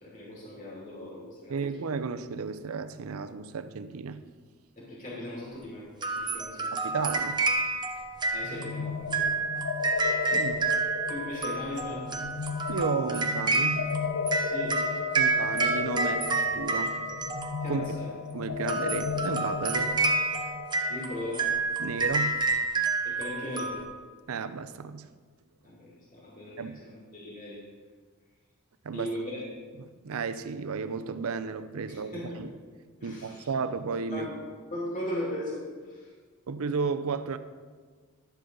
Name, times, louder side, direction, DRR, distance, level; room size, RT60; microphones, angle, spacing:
voice 1, 0.0-1.5 4.8-5.9 6.1-6.7 8.3-9.5 11.1-12.2 14.4-14.8 17.6-18.1 20.9-21.5 23.0-23.8 25.6-27.6 28.9-29.4 31.9-32.5 33.0-33.5 34.1-34.4 34.7-36.1, left 1 dB, 40° left, 2.4 m, -38 dB
voice 2, 1.5-4.2 6.7-7.4 10.3-10.7 12.4-13.9 15.2-17.0 17.7-17.8 18.3-20.0 21.8-22.4 24.3-25.1 26.6-26.8 28.8-29.2 29.8-32.5 33.0-34.3 36.5-37.4, right 5 dB, 70° right, 0.5 m, -33 dB
sound 1, 6.0-18.0 18.6-23.8, right 3 dB, 20° right, 0.8 m, -29 dB
sound 2, 8.4-22.0, left 5 dB, 80° left, 0.6 m, -34 dB
11.5 x 7.7 x 3.9 m
head